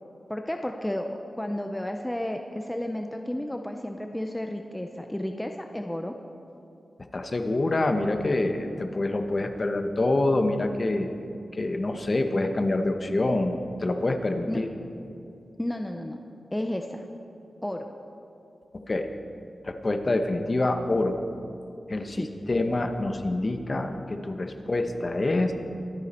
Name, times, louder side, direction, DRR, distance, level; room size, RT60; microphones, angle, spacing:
voice 1, 0.3-1.1 1.3-6.2 14.5-14.6 15.6-16.2 16.5-17.0 17.6-17.9 22.1-22.3, left 1 dB, 10° left, 4 dB, 0.6 m, -32 dB
voice 2, 7.1-11.1 11.5-14.7 18.9-19.1 19.6-21.3 21.9-25.5, left 2 dB, 35° left, 6 dB, 1.0 m, -26 dB
23.5 x 9.3 x 4.3 m, 2.7 s
wide cardioid pair, 130°, 0 cm